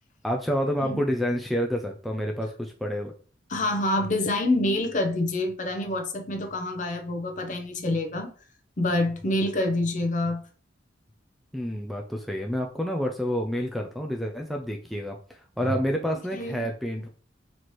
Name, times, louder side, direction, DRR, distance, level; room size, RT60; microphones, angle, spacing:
voice 1, 0.2-3.1 11.5-17.1, equal, ahead, 0.3 m, -29 dB
voice 2, 3.5-8.3 8.8-10.4 15.6-15.8 16.3-16.7, left 1 dB, 40° left, 0.6 m, -27 dB
4.1 x 3.1 x 3.0 m
head